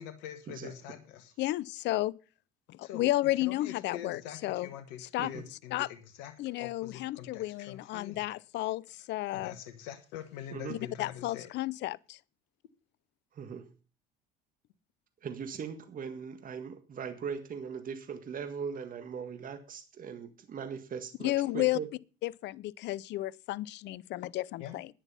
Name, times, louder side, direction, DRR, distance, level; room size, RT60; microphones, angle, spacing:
voice 1, 0.0-1.3 2.8-6.3 6.6-8.3 9.3-11.5 24.6-24.8, left 10 dB, 75° left, 1.3 m, -44 dB
voice 2, 1.4-2.1 2.7-4.7 5.1-5.3 5.7-5.9 6.4-9.5 10.7-12.2 21.2-21.8 22.2-24.9, left 16 dB, 60° left, 0.6 m, -32 dB
voice 3, 13.3-13.7 15.2-21.9, right 6 dB, 40° right, 1.8 m, -40 dB
10.5 x 9.9 x 5.6 m
hypercardioid pair, 70°, 21 cm